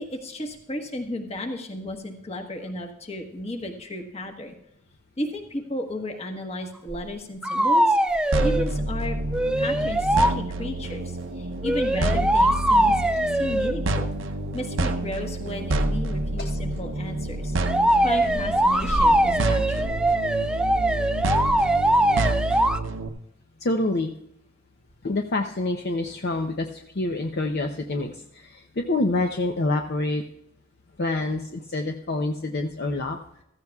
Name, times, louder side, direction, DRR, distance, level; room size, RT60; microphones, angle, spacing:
voice 1, 0.0-4.5 5.2-8.0 8.4-9.2 9.6-13.0 13.4-14.1 14.5-17.5 18.0-20.0, left 1 dB, 30° left, 3 dB, 1.3 m, -34 dB
sound 1, 6.9-7.0 7.4-8.7 9.3-10.3 11.6-13.8 17.7-22.8, right 1 dB, 5° right, 0.4 m, -22 dB
sound 2, 8.3-23.1, right 2 dB, 65° right, 0.8 m, -28 dB
voice 2, 23.6-24.1 25.0-30.2 31.0-33.2, left 2 dB, 50° left, 4 dB, 0.7 m, -27 dB
15.0 x 14.5 x 2.4 m, 0.80 s
head